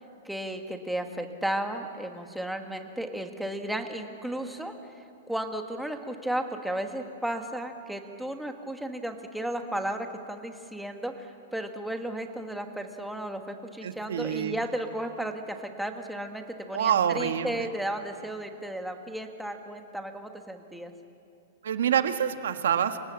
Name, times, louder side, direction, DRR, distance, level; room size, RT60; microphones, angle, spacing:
voice 1, 0.2-20.9, right 1 dB, ahead, 4 dB, 1.3 m, -34 dB
voice 2, 13.8-14.7 16.7-17.7 21.6-23.0, right 9 dB, 85° right, 7 dB, 1.7 m, -26 dB
29.5 x 26.0 x 7.5 m, 2.6 s
supercardioid pair, 175°, 0 cm